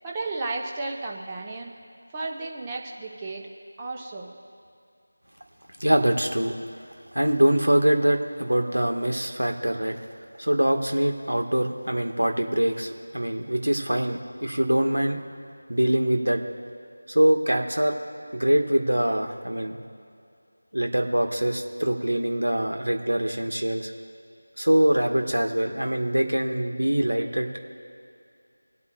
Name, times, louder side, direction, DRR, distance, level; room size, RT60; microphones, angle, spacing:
voice 1, 0.0-1.7 2.1-3.5 3.8-4.3, right 3 dB, 15° right, -1 dB, 0.9 m, -33 dB
voice 2, 5.8-6.5 7.1-10.0 10.4-15.2 15.7-16.4 17.1-17.9 18.3-19.8 20.7-23.9 24.6-27.6, right 1 dB, 75° right, 3 dB, 1.4 m, -23 dB
23.5 x 8.4 x 2.3 m, 2.4 s
figure-of-eight pair, 170°, 0 cm